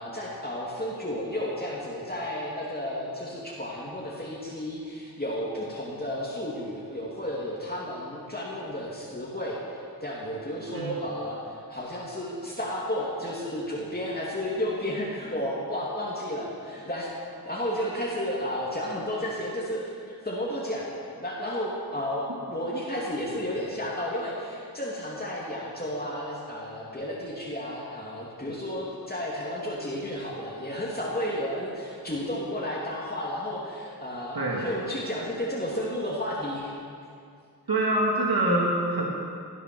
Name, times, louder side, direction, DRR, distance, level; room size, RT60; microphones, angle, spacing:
voice 1, 0.0-11.4 11.7-17.1 17.4-20.9 21.2-36.7, equal, 25° left, -6 dB, 2.6 m, -32 dB
voice 2, 34.4-34.7 37.7-39.1, right 1 dB, 75° right, -3 dB, 2.2 m, -25 dB
16.5 x 9.9 x 6.2 m, 2.3 s
wide cardioid pair, 65°, 37 cm